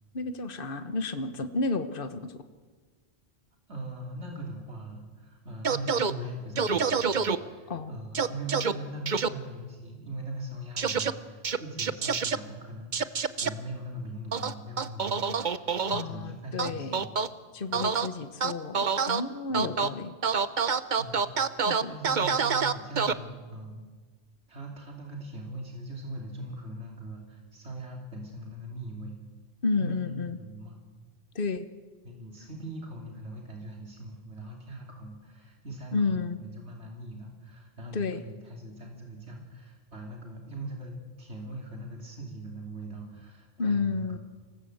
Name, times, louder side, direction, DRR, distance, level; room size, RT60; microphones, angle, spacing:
voice 1, 0.1-2.4 7.7-7.9 15.9-17.1 17.5-20.2 21.6-21.9 29.6-30.4 31.3-31.7 35.9-36.4 37.9-38.2 43.6-44.2, left 3 dB, 55° left, 9 dB, 1.5 m, -31 dB
voice 2, 3.7-17.1 17.7-17.9 19.5-19.7 21.0-23.9 24.5-29.2 29.7-30.8 32.0-44.2, right 1 dB, 85° right, 0 dB, 3.5 m, -41 dB
sound 1, 5.6-6.1 6.6-7.4 8.1-8.7 9.1-9.3 10.8-11.1 11.4-12.4 12.9-13.5 14.3-16.0 16.6-17.3 17.7-18.1 18.4-19.2 19.5-19.9 20.2-23.1, right 5 dB, 45° right, 1.0 m, -26 dB
26.5 x 19.5 x 8.0 m, 1.4 s
omnidirectional pair, 1.1 m